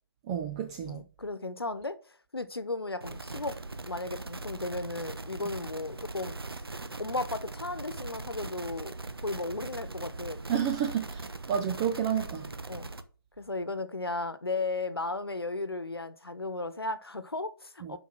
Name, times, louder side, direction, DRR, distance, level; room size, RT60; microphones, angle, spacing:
voice 1, 0.3-1.0 10.5-12.5 17.8-18.0, right 8 dB, 15° right, 0.3 m, -30 dB
voice 2, 0.8-2.0 2.3-3.6 3.9-6.4 7.0-8.9 9.2-10.4 12.7-12.9 13.4-18.0, left 2 dB, 85° left, 1.0 m, -35 dB
sound 1, 3.0-13.0, right 3 dB, 80° right, 0.9 m, -40 dB
6.6 x 5.2 x 5.4 m
figure-of-eight pair, 145°, 12 cm